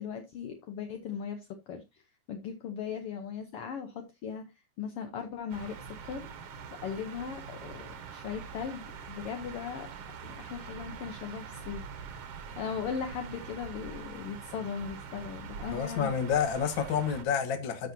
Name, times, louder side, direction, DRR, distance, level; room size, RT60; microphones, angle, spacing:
voice 1, 0.0-2.0 2.3-4.4 4.8-6.3 6.8-7.8 8.1-9.9 10.2-12.2 12.6-16.1, left 7 dB, 70° left, 1.4 m, -38 dB
sound 1, 5.5-17.2, right 6 dB, 60° right, 1.8 m, -44 dB
voice 2, 15.6-17.9, left 7 dB, 55° left, 1.4 m, -29 dB
12.0 x 6.5 x 2.7 m
omnidirectional pair, 3.7 m